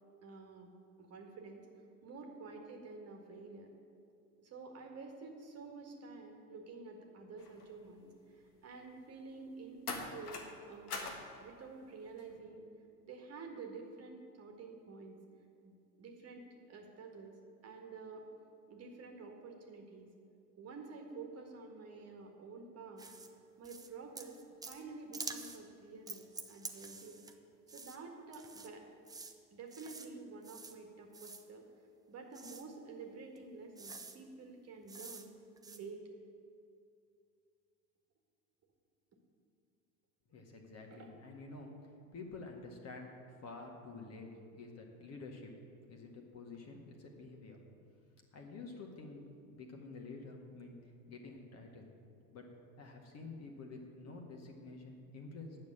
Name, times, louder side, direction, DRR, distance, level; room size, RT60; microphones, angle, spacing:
voice 1, 0.2-0.7 1.0-1.7 2.0-3.7 4.4-11.1 11.4-12.7 13.0-15.2 15.6-17.3 17.6-18.2 18.7-20.1 20.6-23.1 23.6-27.2 27.7-28.9 29.5-31.7 32.1-35.4 35.7-36.0 40.9-41.1, right 4 dB, 30° right, 2 dB, 1.7 m, -50 dB
sound 1, 7.4-7.7 9.9-10.5 10.9-11.3 12.2-12.4, left 3 dB, 75° left, 1.5 m, -42 dB
sound 2, 23.0-23.3 23.6-23.9 24.2-24.8 25.1-25.6 26.1-27.4 27.7-28.0 28.3-28.7 29.1-29.3 29.7-30.1 30.4-30.7 31.1-31.4 32.3-32.6 33.4-33.5 33.8-34.2 34.9-35.3 35.6-35.8, right 4 dB, 10° right, 0.7 m, -48 dB
voice 2, 40.3-43.1 43.4-45.5 45.9-47.6 48.3-50.7 51.1-51.9 52.3-52.5 52.8-55.6, left 3 dB, 35° left, 2 dB, 1.8 m, -49 dB
9.4 x 6.9 x 8.7 m, 2.5 s
figure-of-eight pair, 80°, 46 cm